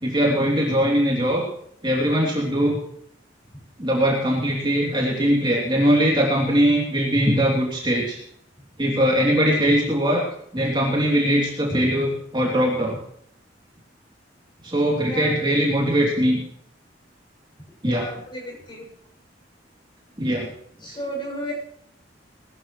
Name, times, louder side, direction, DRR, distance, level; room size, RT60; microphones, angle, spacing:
voice 1, 0.0-1.5 1.8-2.8 3.8-8.2 8.8-10.3 10.5-13.0 14.6-16.4 17.8-18.1 20.2-20.5 20.8-20.9, equal, 25° right, -3 dB, 3.2 m, -21 dB
voice 2, 8.9-9.2 15.0-15.3 17.8-18.9 20.8-21.5, equal, 25° left, -1 dB, 7.2 m, -33 dB
20.5 x 14.0 x 3.2 m, 0.66 s
head